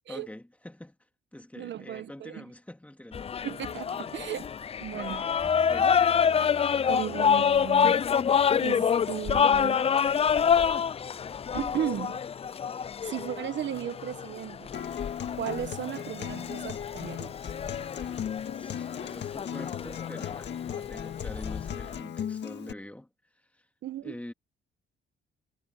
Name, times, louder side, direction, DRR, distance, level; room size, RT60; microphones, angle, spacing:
voice 1, 0.1-1.0 1.3-3.5 4.0-4.2 4.9-6.0 18.5-23.1 23.5-23.6 24.0-24.3, left 1 dB, 5° left, 2.8 m, -45 dB
voice 2, 1.5-2.4 3.4-4.5 4.8-5.2 6.9-8.1 8.6-9.9 11.5-12.2 13.0-14.7 15.4-17.5 23.8-24.1, right 10 dB, 65° right, 1.4 m, -35 dB
sound 1, 3.1-22.0, left 7 dB, 30° left, 0.4 m, -27 dB
sound 2, 5.4-11.7, right 2 dB, 15° right, 4.7 m, -51 dB
Acoustic guitar, 14.7-22.7, left 9 dB, 60° left, 1.8 m, -37 dB
cardioid pair, 90°, 20 cm